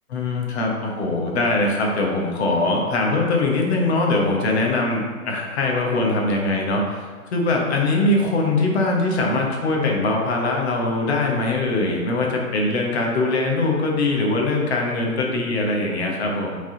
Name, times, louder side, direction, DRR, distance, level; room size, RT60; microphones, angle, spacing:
voice 1, 0.1-16.6, left 2 dB, 50° left, -1 dB, 1.3 m, -22 dB
6.4 x 4.0 x 3.8 m, 1.5 s
hypercardioid pair, 150°, 43 cm